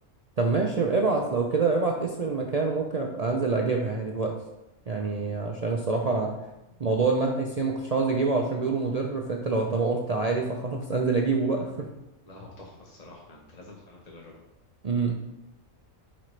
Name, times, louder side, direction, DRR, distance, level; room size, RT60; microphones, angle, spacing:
voice 1, 0.4-4.3 4.9-6.3 6.8-11.9 14.8-15.2, right 4 dB, 45° right, 0 dB, 0.5 m, -26 dB
voice 2, 12.3-14.3, left 2 dB, 35° left, -1 dB, 0.9 m, -48 dB
8.9 x 4.3 x 3.2 m, 0.92 s
omnidirectional pair, 1.3 m